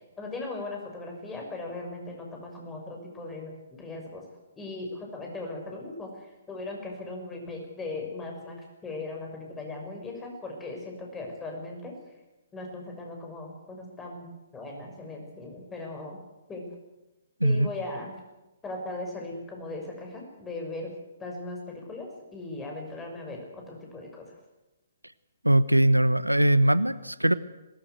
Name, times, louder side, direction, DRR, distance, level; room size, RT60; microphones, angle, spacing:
voice 1, 0.2-4.2 4.6-11.9 12.5-16.2 16.5-16.6 17.4-18.1 18.6-20.9 21.2-24.2, left 2 dB, 10° left, 1 dB, 6.4 m, -38 dB
voice 2, 25.4-27.3, right 1 dB, 85° right, 16 dB, 0.9 m, -21 dB
21.5 x 20.0 x 8.1 m, 1.0 s
figure-of-eight pair, 125°, 0 cm